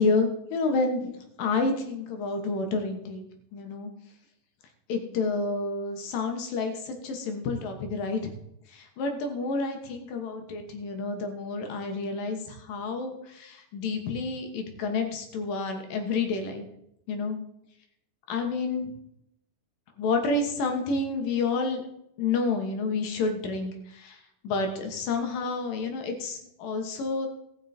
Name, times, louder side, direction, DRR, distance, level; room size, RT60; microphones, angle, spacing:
voice 1, 0.0-3.2 3.5-3.9 4.9-8.3 8.7-16.6 17.1-17.4 18.3-18.9 20.0-21.8 22.2-24.2 24.4-27.3, left 3 dB, 85° left, 5 dB, 3.1 m, -29 dB
18.0 x 6.4 x 4.3 m, 0.80 s
omnidirectional pair, 3.8 m